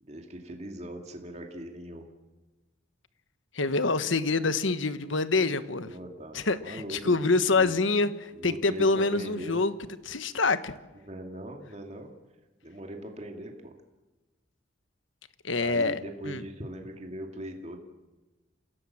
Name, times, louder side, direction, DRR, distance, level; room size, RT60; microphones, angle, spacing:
voice 1, 0.0-2.1 5.9-7.1 7.5-7.7 8.3-9.6 11.0-12.1 12.6-13.7 15.6-17.8, right 1 dB, 35° right, 3 dB, 2.3 m, -40 dB
voice 2, 3.5-5.9 6.3-9.7 10.0-10.7 15.4-16.0 16.2-16.4, left 3 dB, 85° left, 12 dB, 1.3 m, -26 dB
29.0 x 17.0 x 7.4 m, 1.1 s
head